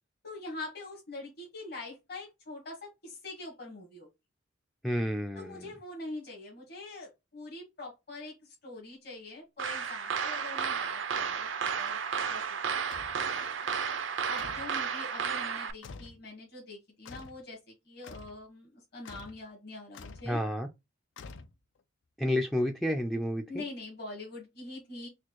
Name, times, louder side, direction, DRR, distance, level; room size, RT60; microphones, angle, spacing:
voice 1, 0.2-4.1 5.3-12.8 14.3-20.4 23.5-25.1, left 2 dB, 60° left, 1.4 m, -44 dB
voice 2, 4.8-5.7 20.3-20.7 22.2-23.6, equal, ahead, 0.3 m, -30 dB
sound 1, 9.6-15.7, right 6 dB, 80° right, 0.6 m, -33 dB
sound 2, 12.9-13.2 14.4-14.8 15.8-16.2 17.1-17.4 18.0-18.4 19.1-19.4 19.9-20.3 21.2-21.8, left 4 dB, 90° left, 0.5 m, -47 dB
4.2 x 2.3 x 2.9 m
head